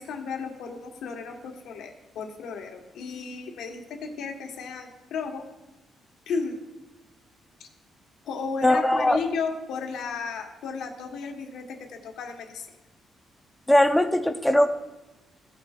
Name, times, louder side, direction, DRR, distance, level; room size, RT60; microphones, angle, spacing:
voice 1, 0.0-5.4 6.3-6.6 8.2-12.8, left 5 dB, 75° left, 2 dB, 1.4 m, -34 dB
voice 2, 8.6-9.2 13.7-14.7, left 1 dB, 5° left, 6 dB, 0.6 m, -20 dB
17.0 x 7.1 x 2.5 m, 1.0 s
cardioid pair, 160°, 0 cm